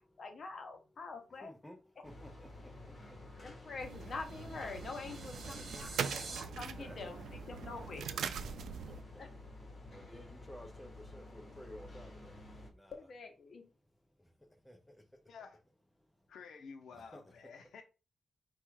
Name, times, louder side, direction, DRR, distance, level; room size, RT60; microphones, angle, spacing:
voice 1, 0.2-1.5 3.4-8.2 9.2-9.3 12.9-13.7, left 4 dB, 45° left, 0.8 m, -46 dB
voice 2, 1.4-1.8 2.0-2.7 5.2-6.1 6.8-7.0 8.7-9.2 9.9-12.9 14.7-14.9 17.1-17.2, equal, 5° left, 0.6 m, -53 dB
sound 1, 2.0-12.7, left 2 dB, 25° left, 1.2 m, -51 dB
sound 2, 3.7-6.4, right 3 dB, 60° right, 1.0 m, -48 dB
sound 3, 3.8-9.0, right 7 dB, 90° right, 0.3 m, -42 dB
voice 3, 15.3-15.6 16.3-17.8, left 5 dB, 80° left, 0.6 m, -51 dB
4.6 x 2.4 x 4.6 m
wide cardioid pair, 150°, 0 cm